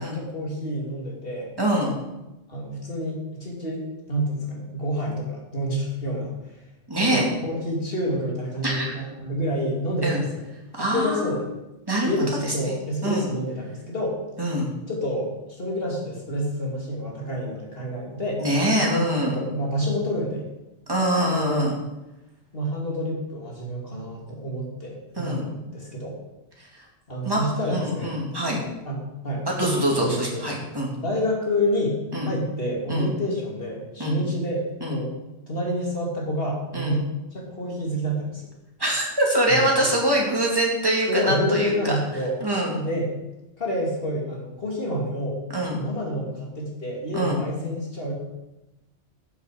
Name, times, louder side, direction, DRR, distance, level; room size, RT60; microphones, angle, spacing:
voice 1, 0.0-1.5 2.5-6.3 7.0-10.5 10.8-11.5 12.0-14.2 14.9-18.4 19.2-20.4 21.3-21.7 22.5-26.1 27.1-28.3 28.8-29.0 29.2-30.5 31.0-32.0 32.3-35.1 35.5-37.0 37.3-38.5 39.5-39.8 41.1-42.3 42.7-43.1 43.6-48.1, equal, 50° left, -2 dB, 2.9 m, -28 dB
voice 2, 1.6-2.0 6.9-7.3 8.6-8.9 10.0-10.2 10.7-11.3 11.9-12.1 12.4-12.7 13.0-13.3 14.4-14.7 18.4-19.4 20.9-21.7 25.2-25.4 27.2-27.4 27.7-28.6 29.6-30.9 32.1-32.3 32.9-33.1 34.0-34.2 34.8-35.0 36.7-37.0 38.8-42.0 42.4-42.8 45.5-45.8 47.1-47.4, right 1 dB, 20° right, -2 dB, 2.5 m, -24 dB
13.0 x 7.1 x 5.0 m, 0.98 s
omnidirectional pair, 1.2 m